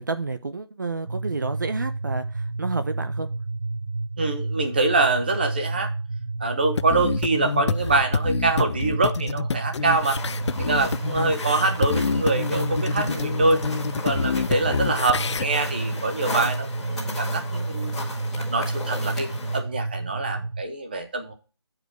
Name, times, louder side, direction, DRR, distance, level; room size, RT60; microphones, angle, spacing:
voice 1, 0.0-3.3, right 3 dB, 45° right, 0.7 m, -30 dB
sound 1, 1.1-20.6, right 2 dB, 80° right, 1.6 m, -30 dB
voice 2, 4.2-5.9 6.4-10.2 10.6-13.6 14.0-17.9 18.4-21.3, right 3 dB, 20° right, 0.9 m, -25 dB
sound 2, 6.8-15.5, left 6 dB, 85° left, 0.4 m, -28 dB
sound 3, 9.8-19.6, left 4 dB, ahead, 1.1 m, -36 dB
8.3 x 4.9 x 4.6 m
figure-of-eight pair, 175°, 14 cm